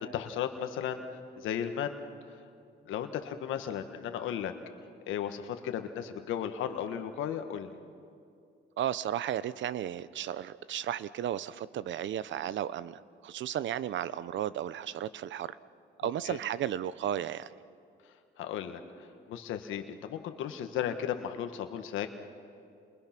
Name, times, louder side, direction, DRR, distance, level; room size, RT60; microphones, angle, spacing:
voice 1, 0.0-1.0 1.4-2.0 2.9-4.5 5.1-7.7 16.2-16.4 18.4-18.8 19.3-22.1, left 9 dB, 85° left, 7 dB, 1.5 m, -35 dB
voice 2, 8.8-15.6 16.0-17.5, right 11 dB, 70° right, 17 dB, 0.8 m, -34 dB
29.5 x 29.0 x 6.0 m, 2.4 s
cardioid pair, 90°, 20 cm